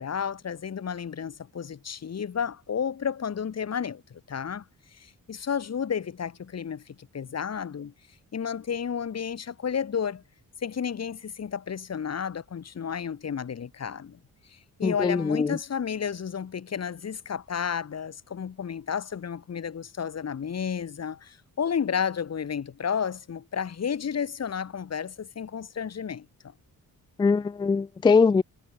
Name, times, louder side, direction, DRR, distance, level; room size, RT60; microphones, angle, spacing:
voice 1, 0.0-4.7 4.9-7.9 8.3-10.2 10.6-14.2 14.5-26.5, left 7 dB, 45° left, 7.5 m, -32 dB
voice 2, 14.8-15.6 27.2-28.4, left 5 dB, 15° left, 0.3 m, -22 dB
wide cardioid pair, 170°, 34 cm